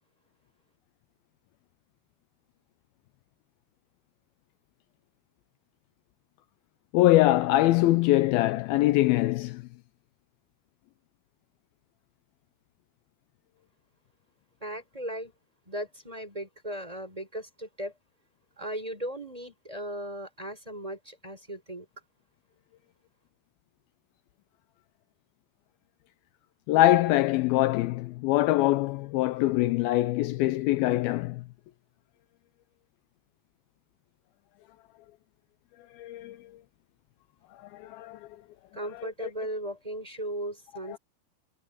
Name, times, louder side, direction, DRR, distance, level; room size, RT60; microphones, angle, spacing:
voice 1, 6.9-9.6 26.7-31.4 36.0-36.4 37.7-38.2 39.2-39.3, left 16 dB, 85° left, 2.2 m, -23 dB
voice 2, 14.6-15.3 15.7-17.9 18.6-21.9 38.7-41.0, right 1 dB, 10° right, 4.6 m, -37 dB
omnidirectional pair, 4.9 m